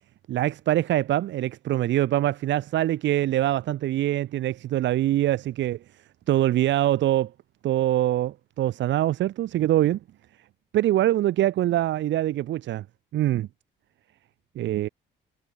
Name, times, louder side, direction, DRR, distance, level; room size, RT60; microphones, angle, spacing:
voice 1, 0.3-5.8 6.3-7.3 7.6-10.0 10.7-12.8 13.1-13.5 14.6-14.9, right 13 dB, 65° right, 0.6 m, -24 dB
cardioid pair, 90°, 20 cm